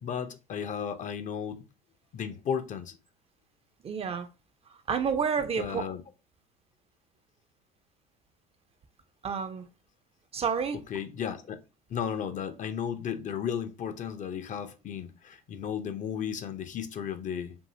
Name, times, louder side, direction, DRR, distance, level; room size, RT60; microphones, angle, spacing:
voice 1, 0.0-1.6 2.1-2.9 5.6-6.0 10.9-11.6 11.9-17.6, left 8 dB, 35° left, 0.5 m, -34 dB
voice 2, 3.8-4.3 4.9-5.8 9.2-9.6 10.3-10.8, right 6 dB, 30° right, 0.4 m, -29 dB
2.7 x 2.6 x 2.6 m
hypercardioid pair, 65°, 21 cm